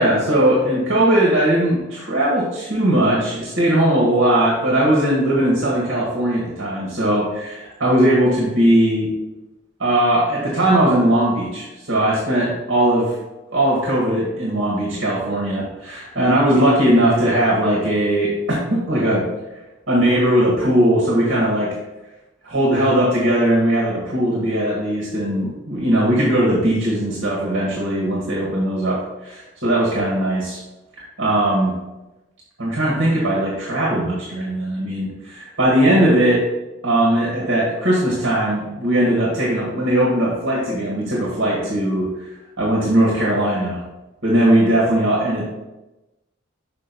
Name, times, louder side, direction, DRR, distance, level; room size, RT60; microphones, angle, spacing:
voice 1, 0.0-9.1 9.8-13.2 13.5-19.3 19.9-21.7 22.4-30.6 31.2-31.7 32.6-36.5 36.8-42.3 42.6-43.8 44.2-45.4, right 1 dB, 70° right, -5 dB, 1.8 m, -19 dB
6.2 x 5.4 x 4.1 m, 1.0 s
head